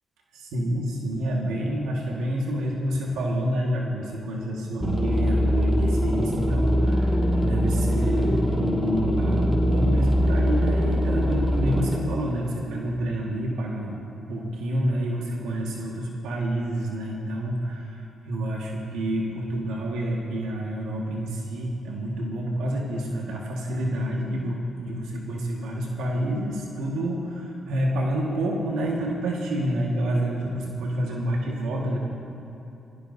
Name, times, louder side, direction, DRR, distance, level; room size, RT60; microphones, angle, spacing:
voice 1, 0.3-14.0 14.3-32.0, right 1 dB, 85° right, -2 dB, 1.8 m, -28 dB
sound 1, 4.8-12.0, equal, 10° right, 2.5 m, -22 dB
24.5 x 17.0 x 2.8 m, 2.8 s
supercardioid pair, 60°, 0 cm